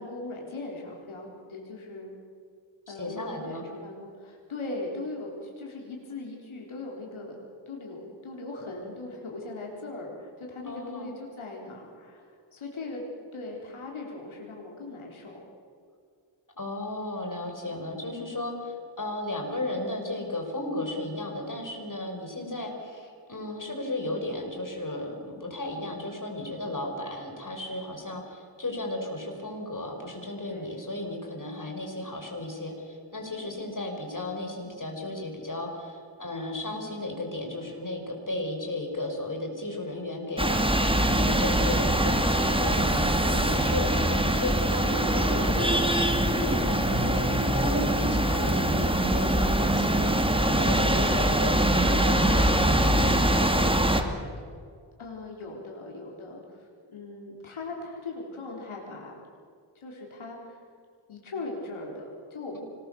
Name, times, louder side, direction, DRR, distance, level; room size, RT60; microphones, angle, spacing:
voice 1, 0.0-2.1 2.9-7.4 7.7-13.0 13.3-15.4 17.6-17.9 30.5-30.7 33.3-33.5 42.9-43.3 55.0-59.2 59.8-60.6 61.1-62.6, left 2 dB, 85° left, -1 dB, 4.0 m, -39 dB
voice 2, 2.9-3.6 10.7-11.1 16.6-42.8 43.3-53.7, left 2 dB, 40° left, 3 dB, 6.0 m, -34 dB
sound 1, 40.4-54.0, right 1 dB, 10° right, 2.7 m, -23 dB
25.5 x 21.0 x 7.0 m, 2.3 s
cardioid pair, 50°, 47 cm